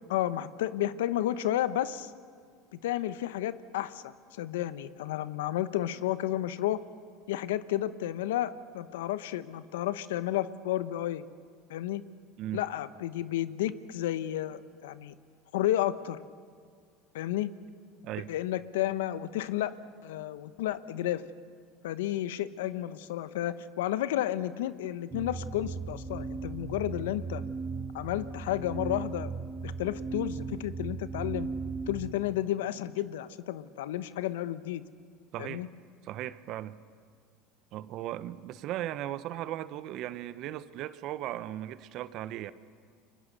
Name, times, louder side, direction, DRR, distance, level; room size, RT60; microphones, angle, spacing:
voice 1, 0.1-2.1 2.8-6.8 7.3-11.3 11.7-12.0 12.5-15.1 15.5-16.2 17.1-17.5 18.3-19.8 20.0-21.3 21.8-27.4 27.9-29.3 29.6-31.5 31.9-34.8 35.4-35.7, left 13 dB, 90° left, 1.0 m, -32 dB
sound 1, 25.1-32.1, right 4 dB, 25° right, 2.3 m, -37 dB
voice 2, 35.3-35.7 36.0-36.8 37.7-42.5, right 13 dB, 55° right, 1.1 m, -37 dB
29.5 x 24.0 x 6.8 m
supercardioid pair, 105°, 0 cm